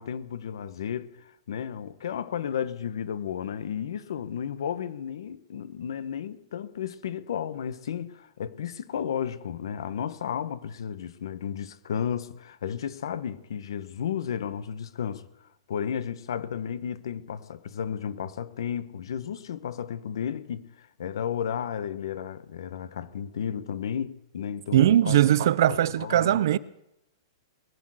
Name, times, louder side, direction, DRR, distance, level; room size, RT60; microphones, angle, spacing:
voice 1, 0.0-25.2 25.7-26.4, left 8 dB, 65° left, 1.2 m, -33 dB
voice 2, 24.7-26.6, right 12 dB, 50° right, 0.6 m, -20 dB
20.5 x 8.7 x 7.9 m
hypercardioid pair, 175°, 3 cm